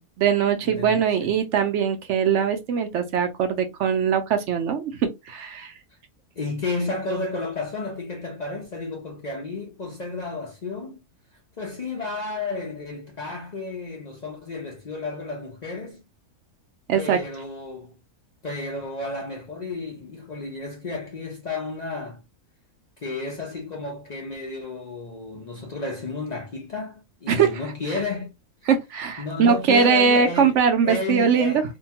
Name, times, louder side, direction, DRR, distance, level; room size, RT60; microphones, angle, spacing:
voice 1, 0.0-5.7 16.9-17.2 27.3-27.6 28.7-31.6, right 6 dB, 65° right, 0.8 m, -21 dB
voice 2, 0.7-1.3 6.4-11.0 11.6-16.0 16.9-18.0 18.4-22.2 23.0-28.3 29.2-31.6, left 3 dB, 65° left, 0.4 m, -32 dB
2.7 x 2.2 x 2.7 m
omnidirectional pair, 1.6 m